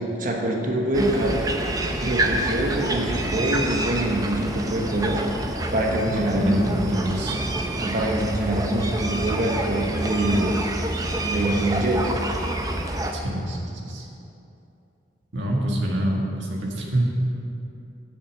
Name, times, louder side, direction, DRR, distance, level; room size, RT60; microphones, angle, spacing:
voice 1, 0.0-1.5 2.0-5.2 5.7-6.7 7.8-10.6 11.2-12.1, right 1 dB, 45° right, 0 dB, 1.1 m, -25 dB
sound 1, 0.9-13.1, right 1 dB, 20° right, 0.6 m, -27 dB
voice 2, 6.0-7.4 13.1-14.1 15.3-17.1, right 1 dB, 75° right, -1 dB, 1.7 m, -26 dB
8.3 x 6.7 x 7.3 m, 2.7 s
head